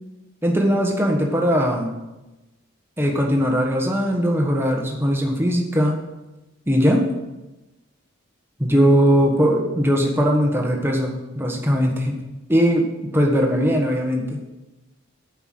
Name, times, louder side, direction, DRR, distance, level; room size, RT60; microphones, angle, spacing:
voice 1, 0.4-2.0 3.0-6.0 6.7-7.1 8.6-12.2 12.5-14.4, equal, 10° right, 1 dB, 1.3 m, -20 dB
8.0 x 5.6 x 7.6 m, 1.0 s
head